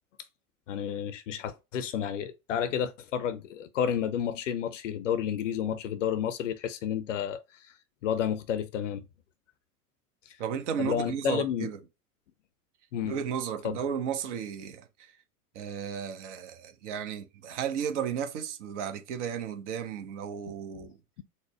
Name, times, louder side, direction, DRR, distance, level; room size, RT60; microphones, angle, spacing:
voice 1, 0.7-7.7 8.0-9.0 10.3-10.4 10.8-11.7 12.9-13.2 13.6-13.8, left 9 dB, 55° left, 0.6 m, -31 dB
voice 2, 10.4-11.8 13.0-15.1 15.5-21.0, right 8 dB, 50° right, 0.9 m, -34 dB
4.1 x 2.1 x 4.5 m
figure-of-eight pair, 85°, 45 cm